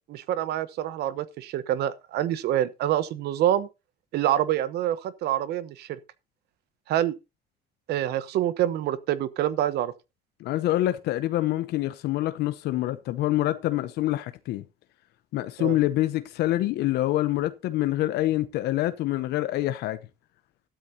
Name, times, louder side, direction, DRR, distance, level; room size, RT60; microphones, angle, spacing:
voice 1, 0.1-3.7 4.1-5.9 6.9-7.1 7.9-9.9 15.6-15.8, right 12 dB, 75° right, 1.0 m, -26 dB
voice 2, 10.4-14.6 15.3-20.0, left 15 dB, 80° left, 0.8 m, -26 dB
13.0 x 12.5 x 2.8 m
cardioid pair, 110°, 17 cm